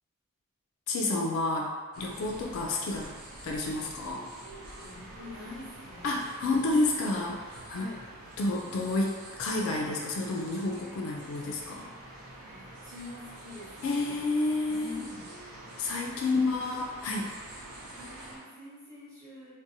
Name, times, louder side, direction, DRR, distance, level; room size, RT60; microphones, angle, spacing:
voice 1, 0.9-3.1 3.4-4.3 6.0-7.9 8.4-11.9 13.8-15.0 15.8-17.3, left 2 dB, 70° left, 0 dB, 0.3 m, -30 dB
sound 1, 1.9-18.4, right 1 dB, 75° right, 0.5 m, -47 dB
voice 2, 4.8-6.5 7.7-8.1 12.2-14.2 14.7-15.4 16.7-17.0 18.0-19.5, left 2 dB, 15° right, -10 dB, 0.6 m, -46 dB
2.6 x 2.1 x 2.7 m, 1.5 s
head